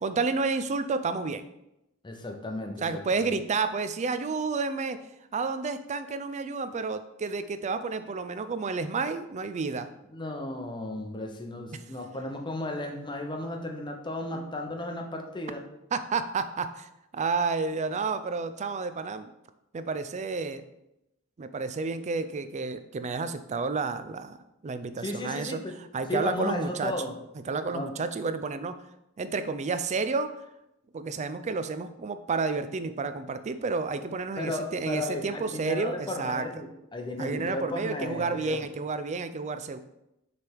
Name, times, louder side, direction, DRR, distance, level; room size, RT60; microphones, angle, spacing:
voice 1, 0.0-1.4 2.8-5.0 5.3-9.9 15.9-19.3 19.7-20.6 21.4-25.6 25.9-26.9 27.4-28.8 29.2-30.3 30.9-36.5 37.2-39.8, right 4 dB, 35° right, 10 dB, 0.4 m, -30 dB
voice 2, 2.0-3.3 10.1-15.7 25.0-25.8 26.1-27.1 27.7-28.0 34.4-38.7, left 1 dB, 20° left, 3 dB, 0.8 m, -34 dB
6.6 x 3.4 x 4.5 m, 0.87 s
head